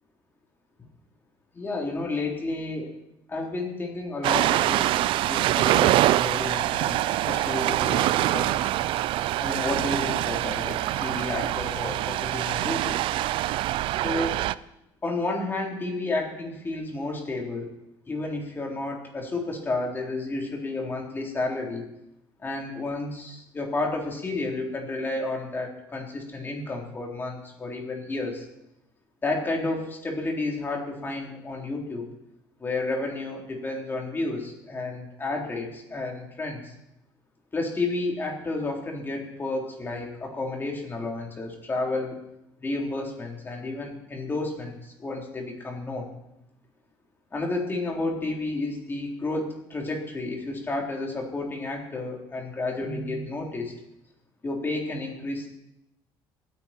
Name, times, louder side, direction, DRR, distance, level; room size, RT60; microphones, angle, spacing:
voice 1, 1.5-2.9 3.3-4.9 5.3-8.8 9.4-13.0 13.9-14.4 15.0-17.7 18.1-21.9 22.4-28.5 29.2-32.1 32.6-36.7 37.5-42.2 42.6-46.1 47.3-53.7 54.4-55.5, left 2 dB, 25° left, 0 dB, 3.7 m, -31 dB
Ocean, 4.2-14.5, right 14 dB, 70° right, 0.5 m, -24 dB
26.5 x 9.5 x 4.5 m, 0.85 s
cardioid pair, 125°, 9 cm